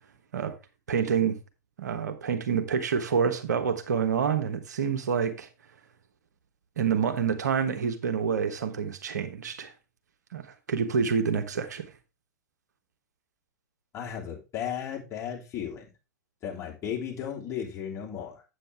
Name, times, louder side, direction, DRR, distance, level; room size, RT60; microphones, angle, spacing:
voice 1, 0.9-1.4 1.8-5.5 6.8-9.7 10.3-11.8, right 6 dB, 75° right, 1.1 m, -27 dB
voice 2, 13.9-15.9 16.4-18.4, left 8 dB, 30° left, 3.0 m, -35 dB
8.1 x 7.7 x 3.4 m
figure-of-eight pair, 100°, 10 cm